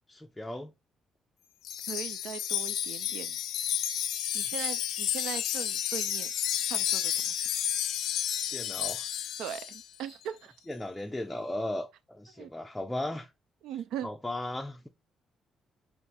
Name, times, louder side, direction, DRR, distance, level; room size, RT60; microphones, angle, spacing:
voice 1, 0.1-0.7 8.5-9.1 10.7-13.3 14.0-14.9, left 1 dB, 10° left, 0.4 m, -36 dB
Wind chime, 1.6-9.8, left 10 dB, 90° left, 0.3 m, -31 dB
voice 2, 1.9-3.4 4.3-6.3 6.7-7.5 9.4-10.5 12.4-12.5 13.6-14.1, right 9 dB, 90° right, 0.3 m, -39 dB
3.8 x 2.4 x 2.5 m
cardioid pair, 90°, 0 cm